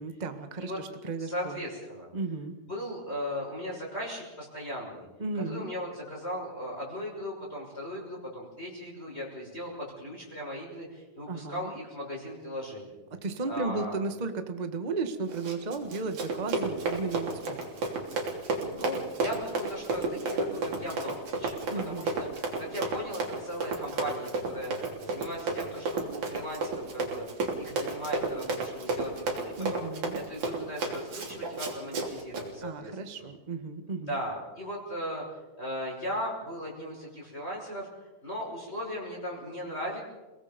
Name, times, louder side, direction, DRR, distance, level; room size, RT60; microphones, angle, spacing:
voice 1, 0.0-1.6 2.1-2.5 5.2-5.7 11.3-11.7 13.2-17.7 21.7-22.1 29.6-30.2 32.6-34.2, right 3 dB, 30° right, 7 dB, 0.7 m, -34 dB
voice 2, 1.2-2.1 2.7-5.1 5.5-12.9 13.4-14.0 18.7-27.3 27.6-29.9 30.1-33.3 34.1-35.2 35.6-37.9 38.2-40.0, equal, 20° left, -3 dB, 6.1 m, -37 dB
Run, 15.3-32.5, right 3 dB, 65° right, 4.7 m, -32 dB
30.0 x 19.5 x 5.3 m, 1.1 s
omnidirectional pair, 3.7 m